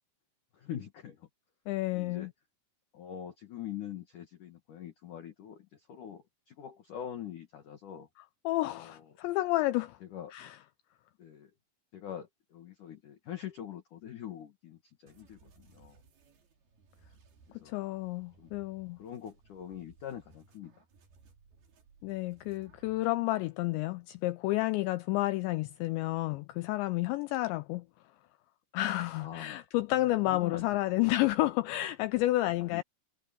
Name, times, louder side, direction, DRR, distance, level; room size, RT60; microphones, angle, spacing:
voice 1, 0.5-1.3 1.9-2.3 2.9-8.1 8.7-9.2 10.0-10.3 11.2-11.5 11.9-16.0 17.5-17.8 18.4-18.5 19.0-20.8 29.1-29.6 29.9-31.0 32.6-32.8, left 10 dB, 60° left, 2.2 m, -44 dB
voice 2, 1.7-2.3 8.5-10.0 10.3-10.6 17.7-19.0 22.0-27.9 28.7-32.8, left 17 dB, 85° left, 2.5 m, -30 dB
sound 1, 15.1-23.1, right 4 dB, 50° right, 5.1 m, -62 dB
omnidirectional pair, 6.0 m